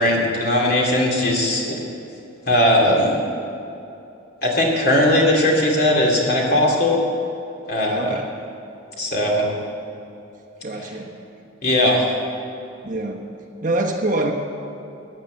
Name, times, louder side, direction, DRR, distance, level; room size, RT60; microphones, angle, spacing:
voice 1, 0.0-1.8 2.5-3.1 4.4-7.0 7.7-8.1 9.0-9.4 11.6-12.0, left 1 dB, 50° left, -2 dB, 2.7 m, -18 dB
voice 2, 7.9-8.3 10.6-11.1 12.8-13.2 13.6-14.3, right 2 dB, 40° right, 1 dB, 1.3 m, -24 dB
15.0 x 8.6 x 7.9 m, 2.8 s
head